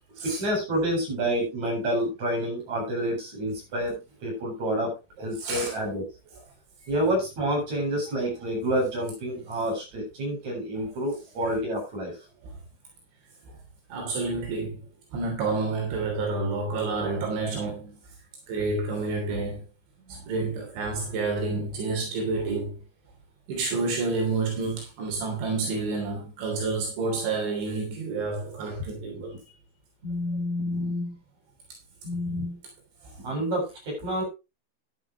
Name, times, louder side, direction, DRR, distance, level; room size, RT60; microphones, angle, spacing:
voice 1, 0.2-6.0 6.9-12.2 29.2-29.3 30.0-31.1 32.0-32.6 33.2-34.2, equal, 40° right, 9.2 m, -28 dB
voice 2, 5.4-5.8 11.4-11.5 12.4-12.5 13.5-13.6 13.9-14.8 15.1-18.0 18.5-19.6 20.1-22.8 23.5-29.3 33.0-33.2, right 3 dB, 80° right, 5.6 m, -29 dB
14.0 x 11.0 x 3.1 m
omnidirectional pair, 5.3 m